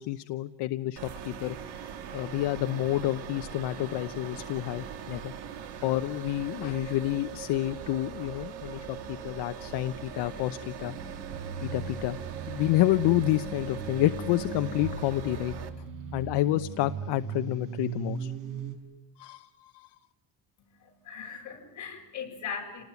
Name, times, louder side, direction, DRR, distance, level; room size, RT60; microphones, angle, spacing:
voice 1, 0.0-1.5 2.1-5.3 5.8-10.9 11.6-12.2 12.5-15.5 16.1-18.3 19.2-19.9, left 15 dB, 70° left, 10 dB, 0.9 m, -29 dB
sound 1, 1.0-15.7, right 8 dB, 65° right, 2.7 m, -41 dB
sound 2, 10.9-18.8, right 6 dB, 85° right, 6.3 m, -38 dB
voice 2, 20.6-22.8, left 6 dB, 40° left, 0 dB, 7.4 m, -39 dB
28.5 x 19.5 x 9.5 m, 0.96 s
cardioid pair, 175°, 42 cm